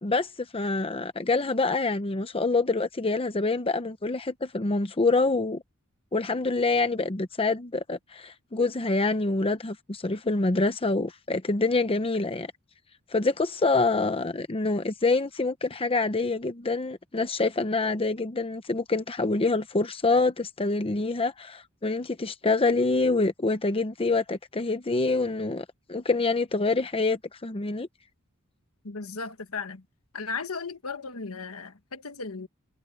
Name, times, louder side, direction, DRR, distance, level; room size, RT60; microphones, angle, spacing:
voice 1, 0.0-5.6 6.1-12.5 13.1-27.9, left 3 dB, 25° left, 0.8 m, -26 dB
voice 2, 28.8-29.8 30.1-32.5, left 4 dB, 70° left, 1.5 m, -36 dB
head